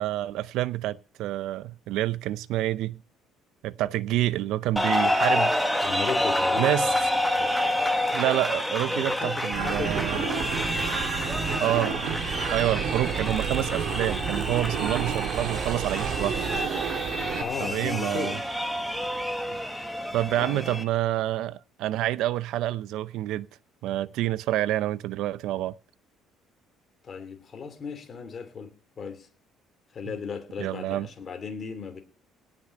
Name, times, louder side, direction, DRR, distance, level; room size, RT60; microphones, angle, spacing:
voice 1, 0.0-3.0 3.6-5.9 6.6-6.9 8.1-10.2 11.6-12.0 12.5-16.5 17.6-18.4 20.1-23.5 23.8-25.8 30.6-31.1, right 14 dB, 70° right, 0.5 m, -28 dB
sound 1, 4.8-20.8, left 1 dB, ahead, 1.3 m, -28 dB
voice 2, 5.8-7.9 8.9-10.5 17.4-18.4 19.5-19.6 20.0-20.7 27.0-29.3 29.9-32.0, left 6 dB, 30° left, 3.0 m, -36 dB
sound 2, 9.5-17.4, right 8 dB, 55° right, 1.9 m, -30 dB
sound 3, 10.1-18.2, left 12 dB, 75° left, 1.5 m, -46 dB
18.0 x 6.2 x 6.7 m
cardioid pair, 160°, 0 cm